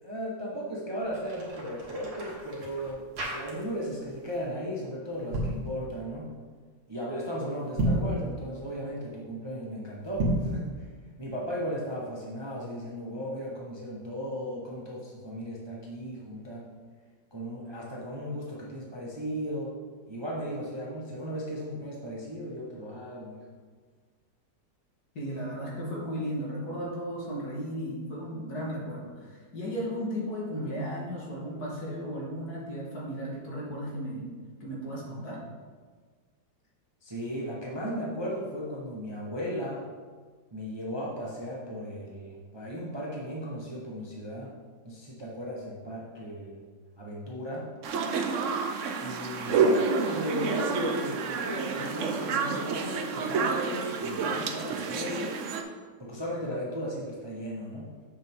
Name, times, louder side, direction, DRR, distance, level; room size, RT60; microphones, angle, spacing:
voice 1, 0.0-6.3 6.9-10.9 11.2-16.6 17.3-19.7 20.1-23.4 37.0-39.8 40.5-44.5 44.8-46.6 47.0-47.7 49.0-55.3 56.0-57.9, equal, 20° right, -4 dB, 0.9 m, -36 dB
sound 1, 1.0-3.9 4.2-4.5 5.1-5.6 7.6-8.2 10.1-10.6, right 1 dB, 85° right, 2.3 m, -31 dB
voice 2, 25.2-34.3 34.6-35.4, equal, 60° left, -4 dB, 2.2 m, -35 dB
sound 2, 47.8-55.6, right 5 dB, 65° right, 0.8 m, -29 dB
8.0 x 6.3 x 3.7 m, 1.5 s
omnidirectional pair, 2.0 m